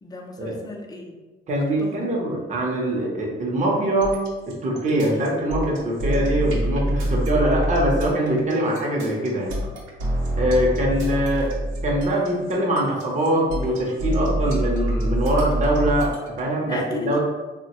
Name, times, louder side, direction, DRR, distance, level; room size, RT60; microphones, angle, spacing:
voice 1, 0.0-1.2 1.8-2.5 16.7-17.2, left 2 dB, 20° left, 1 dB, 0.5 m, -34 dB
voice 2, 1.5-4.2 4.5-9.6 10.4-11.5 11.8-17.2, right 1 dB, 35° right, -2 dB, 0.7 m, -23 dB
sound 1, 4.0-16.4, right 1 dB, 85° right, 0.7 m, -26 dB
3.3 x 2.1 x 2.9 m, 1.2 s
cardioid pair, 90°, 20 cm